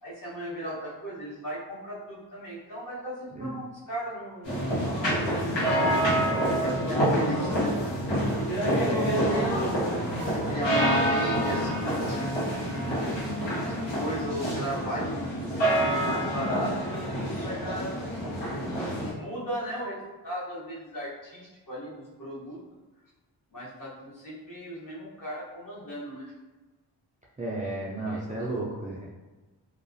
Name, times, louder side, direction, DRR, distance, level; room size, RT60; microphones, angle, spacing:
voice 1, 0.0-4.7 5.5-6.3 6.6-7.7 8.7-9.8 10.2-12.9 13.6-18.0 19.0-22.6 23.5-26.3 28.1-28.6, equal, 45° left, -7 dB, 1.0 m, -36 dB
sound 1, 4.4-19.1, equal, 85° left, 1.0 m, -27 dB
voice 2, 8.7-9.7 27.4-29.1, right 1 dB, 20° right, -6 dB, 0.3 m, -33 dB
2.3 x 2.2 x 2.6 m, 1.2 s
wide cardioid pair, 70°, 43 cm